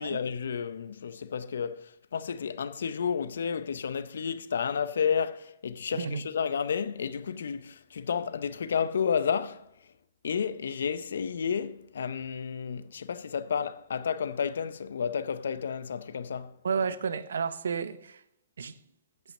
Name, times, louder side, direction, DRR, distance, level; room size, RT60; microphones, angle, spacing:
voice 1, 0.0-9.9 10.2-16.6, left 7 dB, 80° left, 0.6 m, -31 dB
voice 2, 16.6-18.2 18.6-18.8, right 6 dB, 80° right, 0.7 m, -31 dB
8.7 x 5.7 x 6.4 m
hypercardioid pair, 140°, 0 cm